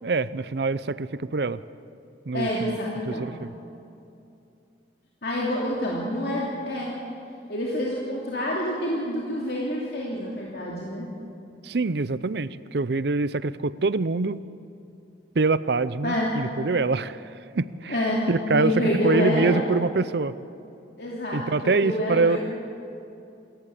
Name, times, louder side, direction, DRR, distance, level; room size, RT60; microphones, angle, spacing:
voice 1, 0.0-1.6 2.3-2.8 3.1-3.5 11.6-14.4 15.4-17.3 17.5-18.0 18.3-20.3 21.3-22.4, right 3 dB, 65° right, 16 dB, 0.6 m, -25 dB
voice 2, 2.3-3.3 5.2-6.9 7.5-11.1 16.0-16.3 17.9-18.2 18.5-19.6 21.0-22.4, left 1 dB, 60° left, -4 dB, 3.0 m, -27 dB
28.0 x 14.0 x 8.4 m, 2.7 s
head